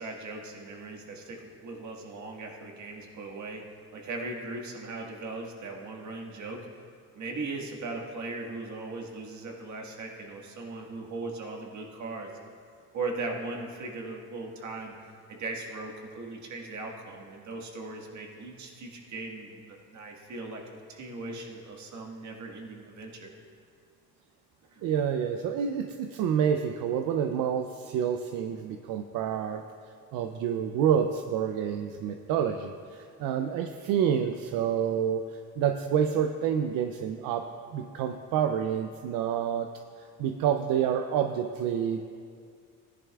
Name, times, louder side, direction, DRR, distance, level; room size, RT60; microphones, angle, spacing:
voice 1, 0.0-3.6 3.9-6.6 7.1-12.3 12.9-14.9 15.3-20.6 20.9-23.3 24.7-24.9, right 3 dB, 60° right, 1 dB, 1.7 m, -38 dB
voice 2, 24.8-29.6 30.1-39.7 40.2-42.0, right 8 dB, 80° right, 6 dB, 0.6 m, -28 dB
15.5 x 10.5 x 2.4 m, 2.2 s
cardioid pair, 100°, 33 cm